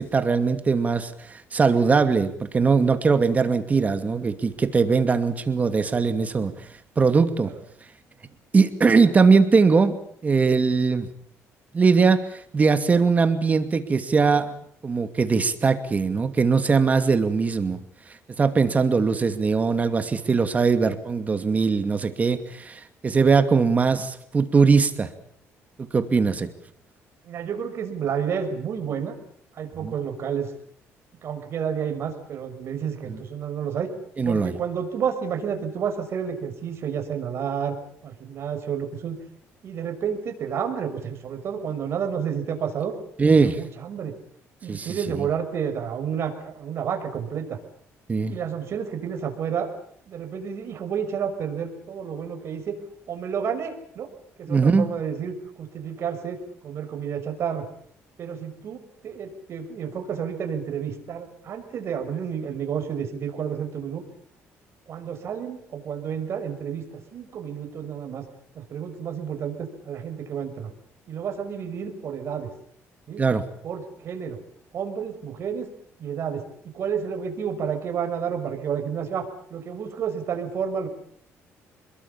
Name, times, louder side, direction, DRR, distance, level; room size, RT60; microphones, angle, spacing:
voice 1, 0.0-6.5 7.0-7.5 8.5-9.9 10.2-11.1 11.7-14.5 14.8-17.8 18.4-25.1 25.8-26.5 29.8-29.9 33.1-33.2 34.2-34.6 43.2-43.6 44.7-45.3 48.1-48.4 54.5-54.9 73.2-73.4, right 4 dB, 30° right, 9 dB, 2.5 m, -21 dB
voice 2, 27.2-29.1 29.5-30.5 31.2-33.9 34.2-37.7 38.0-39.2 39.6-43.0 43.4-44.1 44.6-47.6 48.3-49.7 50.1-52.8 53.1-54.1 54.4-56.4 56.6-57.6 58.2-64.0 64.9-66.8 67.1-68.2 68.5-70.7 71.1-72.5 73.1-73.2 73.6-74.4 74.7-75.7 76.0-76.4 76.7-80.9, right 7 dB, 55° right, 6 dB, 6.2 m, -30 dB
29.5 x 21.5 x 7.3 m, 0.64 s
cardioid pair, 120°, 5 cm